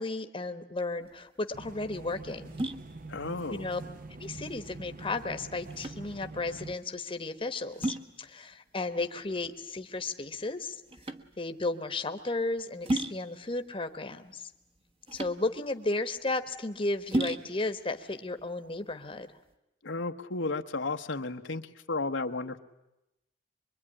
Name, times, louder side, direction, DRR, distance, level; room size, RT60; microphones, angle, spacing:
voice 1, 0.0-2.5 3.5-3.8 4.2-10.8 11.4-14.5 15.1-19.3, left 2 dB, 30° left, 8 dB, 1.2 m, -34 dB
sound 1, 1.0-19.5, right 1 dB, 30° right, 1.3 m, -38 dB
sound 2, 1.5-6.7, right 2 dB, 50° right, 1.0 m, -45 dB
voice 2, 3.1-3.7 19.8-22.6, left 3 dB, 80° left, 6 dB, 1.1 m, -33 dB
24.0 x 23.0 x 9.9 m, 0.90 s
head